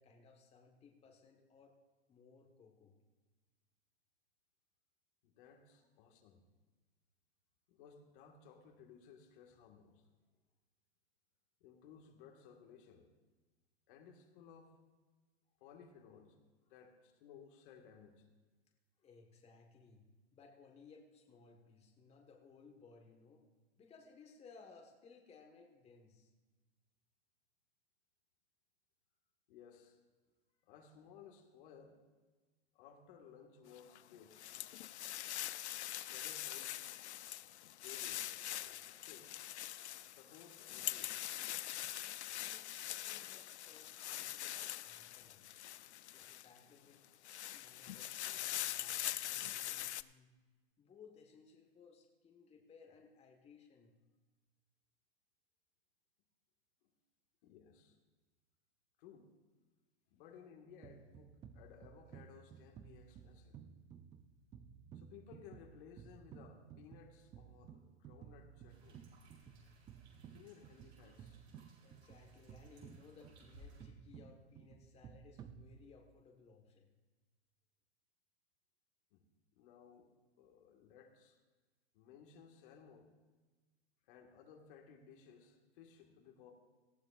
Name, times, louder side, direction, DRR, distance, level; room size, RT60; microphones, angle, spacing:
voice 1, 0.0-1.8 2.1-3.0 19.0-23.5 23.8-26.3 42.4-42.7 43.0-45.4 46.1-47.1 47.5-50.3 50.8-54.0 71.8-76.9, left 5 dB, 20° left, 1 dB, 1.3 m, -62 dB
voice 2, 5.2-6.4 7.7-10.1 11.6-13.1 13.9-14.8 15.6-16.4 16.7-18.3 29.5-30.0 30.6-32.0 32.7-34.4 36.0-36.8 37.8-39.4 40.1-41.3 56.8-56.9 57.4-58.0 59.0-59.3 60.1-63.6 64.9-69.0 70.3-71.4 79.1-79.2 79.5-80.1 80.4-81.4 81.9-83.1 84.0-86.5, left 7 dB, 50° left, 3 dB, 1.7 m, -59 dB
sound 1, 33.8-46.6 47.0-50.0, left 13 dB, 80° left, 0.5 m, -43 dB
sound 2, 60.8-76.2, right 7 dB, 15° right, 0.3 m, -56 dB
sound 3, 68.7-73.9, right 1 dB, 75° right, 4.0 m, -63 dB
18.5 x 13.0 x 2.4 m, 1.3 s
hypercardioid pair, 120°, 33 cm